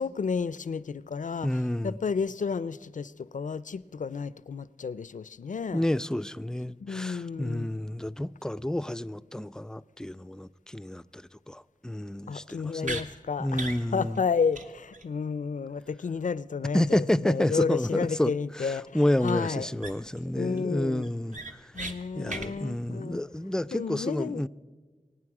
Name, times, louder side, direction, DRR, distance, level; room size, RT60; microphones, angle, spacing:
voice 1, 0.0-5.9 6.8-7.7 12.3-19.7 20.3-21.1 21.7-23.2 23.7-24.5, left 5 dB, 70° left, 0.4 m, -32 dB
voice 2, 1.4-2.0 5.7-11.2 11.5-13.0 13.4-14.2 16.7-18.3 18.6-21.4 22.2-24.5, left 1 dB, 5° left, 0.3 m, -29 dB
sound 1, 12.8-13.1 13.5-13.8 14.2-14.3 14.5-14.7 14.9-15.1 19.2-19.3 19.8-20.2 20.6-20.7 21.0-21.9 22.3-22.5, right 2 dB, 65° right, 1.1 m, -36 dB
24.0 x 9.3 x 4.8 m
wide cardioid pair, 55°, 14 cm